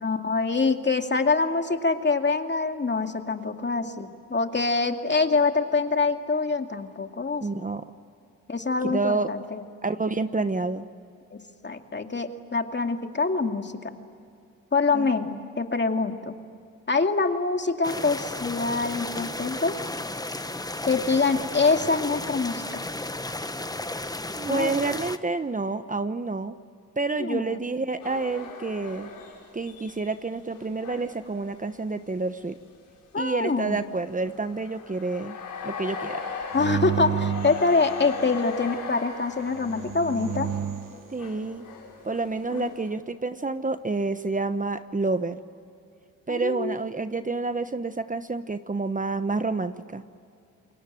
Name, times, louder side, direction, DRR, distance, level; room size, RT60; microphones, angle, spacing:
voice 1, 0.0-7.6 8.5-9.6 11.3-11.4 11.6-13.9 14.7-16.3 16.9-19.8 20.8-22.8 24.5-24.7 27.2-27.6 33.1-33.8 36.5-40.5 42.5-42.7 46.3-46.8, left 4 dB, 35° left, 5 dB, 2.4 m, -25 dB
voice 2, 7.4-7.8 8.8-9.3 9.8-10.8 14.9-15.1 21.3-21.5 24.3-26.6 27.0-29.1 29.5-32.5 33.2-35.4 35.6-36.2 41.1-41.6 42.0-45.4 46.3-50.0, right 3 dB, 25° right, 10 dB, 1.1 m, -28 dB
sound 1, 17.8-25.2, left 2 dB, 10° left, 1.3 m, -34 dB
sound 2, 28.0-32.1 32.6-32.7 33.6-42.9, left 5 dB, 85° left, 7.6 m, -39 dB
sound 3, 36.5-38.5 39.5-41.0, right 8 dB, 75° right, 1.5 m, -31 dB
29.0 x 22.0 x 9.2 m, 2.4 s
supercardioid pair, 60°, 33 cm